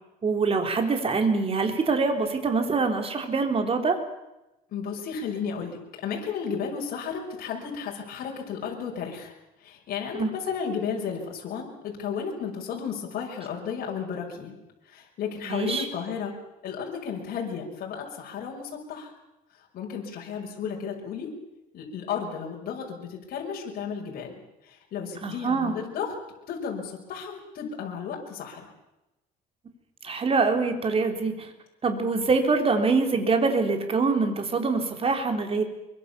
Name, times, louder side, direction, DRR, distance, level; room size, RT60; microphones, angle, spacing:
voice 1, 0.2-4.0 10.1-10.3 15.4-15.9 25.2-25.8 30.0-31.5 31.8-35.6, right 4 dB, 35° right, 5 dB, 4.0 m, -24 dB
voice 2, 4.7-9.3 9.6-14.5 14.9-16.3 16.6-19.1 19.7-21.3 21.7-24.3 24.9-26.1 26.5-28.7, left 6 dB, 60° left, -1 dB, 5.9 m, -33 dB
24.5 x 23.5 x 7.1 m, 0.95 s
cardioid pair, 110°, 17 cm